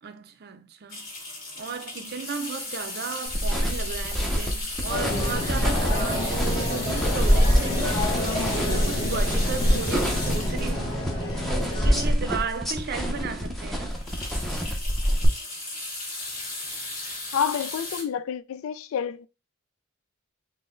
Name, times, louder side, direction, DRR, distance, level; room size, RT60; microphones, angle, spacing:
voice 1, 0.0-1.1 1.6-8.1 8.6-11.0 11.5-14.0, right 5 dB, 50° right, 0.5 m, -35 dB
sound 1, 0.9-12.2 12.7-12.8 13.0-13.2 13.5-18.0, left 2 dB, 40° left, 1.6 m, -36 dB
sound 2, 3.3-15.3, equal, ahead, 0.7 m, -26 dB
sound 3, 4.9-12.1, left 1 dB, 25° left, 1.1 m, -30 dB
voice 2, 17.3-19.3, left 8 dB, 75° left, 0.3 m, -28 dB
4.0 x 2.1 x 3.7 m
head